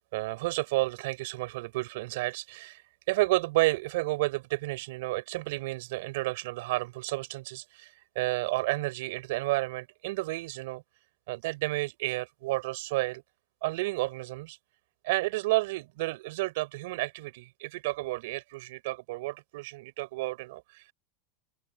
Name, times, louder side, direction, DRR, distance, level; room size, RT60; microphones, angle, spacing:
voice 1, 0.0-2.8 3.1-10.8 11.3-13.2 13.6-14.6 15.0-20.9, right 21 dB, 70° right, 5.4 m, -31 dB
open air
hypercardioid pair, 110°, 0 cm